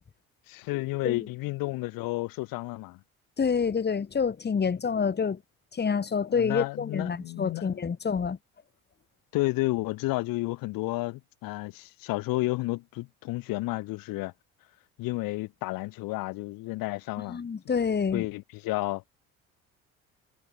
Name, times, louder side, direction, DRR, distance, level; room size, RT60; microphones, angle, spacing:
voice 1, 0.5-3.0 6.3-7.8 9.3-14.3 15.0-17.4 18.1-19.0, left 20 dB, 55° left, 0.7 m, -31 dB
voice 2, 3.4-5.4 5.7-8.4 17.3-18.2, left 6 dB, 25° left, 1.3 m, -27 dB
hypercardioid pair, 60°, 40 cm